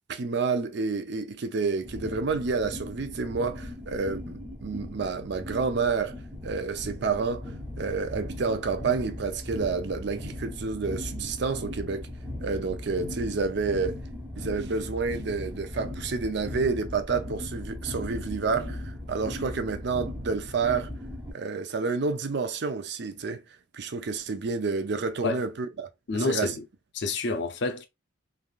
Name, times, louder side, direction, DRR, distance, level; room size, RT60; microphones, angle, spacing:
voice 1, 0.1-6.2 6.4-7.5 7.8-12.1 12.4-14.0 14.4-20.9 21.3-23.4 23.7-25.9 26.1-26.5, right 4 dB, 65° right, 0.5 m, -29 dB
sound 1, 1.8-21.3, left 1 dB, 10° right, 0.6 m, -38 dB
voice 2, 26.1-26.6 26.9-27.8, left 3 dB, 65° left, 0.6 m, -28 dB
3.3 x 2.5 x 2.3 m
head